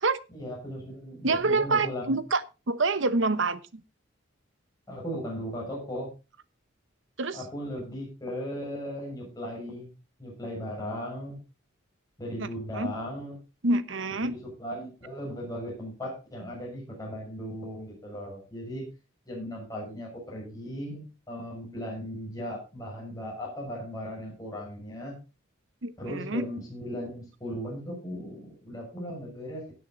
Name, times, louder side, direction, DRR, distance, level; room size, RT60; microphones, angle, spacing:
voice 1, 0.3-2.2 4.9-6.1 7.3-9.9 10.2-11.4 12.2-13.4 14.2-18.9 19.3-25.1 26.0-29.6, equal, 20° left, 6.2 m, -37 dB
voice 2, 1.2-3.8 7.2-7.4 12.4-12.5 12.7-12.9 13.6-14.3 25.8-26.4, right 3 dB, 65° right, 1.0 m, -27 dB
16.5 x 8.3 x 3.9 m
head